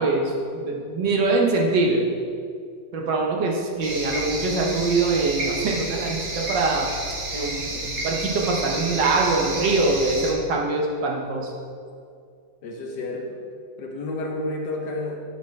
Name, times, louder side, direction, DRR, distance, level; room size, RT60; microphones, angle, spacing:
voice 1, 0.0-2.0 2.9-6.9 7.3-11.5, right 3 dB, 75° right, 0 dB, 1.7 m, -23 dB
sound 1, 3.8-10.3, right 1 dB, 55° right, 1.6 m, -30 dB
voice 2, 12.6-13.4 13.8-15.2, left 2 dB, 70° left, 1 dB, 1.6 m, -30 dB
9.1 x 8.6 x 3.2 m, 2.3 s
omnidirectional pair, 2.0 m